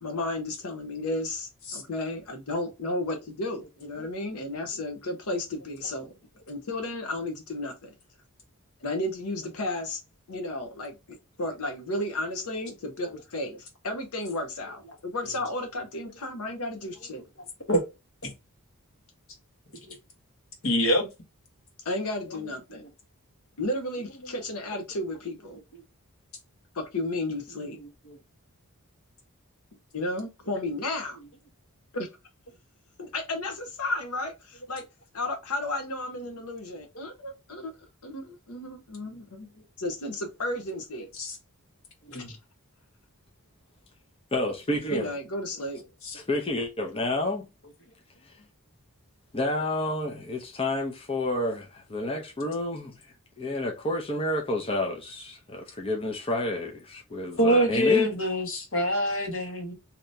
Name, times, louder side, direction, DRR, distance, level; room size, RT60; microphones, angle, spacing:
voice 1, 0.0-6.1 6.5-7.9 8.8-10.0 10.3-17.2 21.8-22.9 23.6-25.6 26.7-27.8 29.9-31.2 31.9-32.1 33.0-34.8 35.1-37.7 38.0-39.5 39.8-41.1 42.1-42.4 44.9-45.8, left 2 dB, 80° left, 0.8 m, -33 dB
voice 2, 20.6-21.1 41.2-41.4 42.1-42.3 46.0-46.2 57.4-59.7, equal, 65° left, 1.4 m, -25 dB
voice 3, 44.3-45.1 46.1-47.5 49.3-52.9 53.4-58.1, left 1 dB, 25° left, 0.6 m, -29 dB
2.9 x 2.7 x 3.2 m
head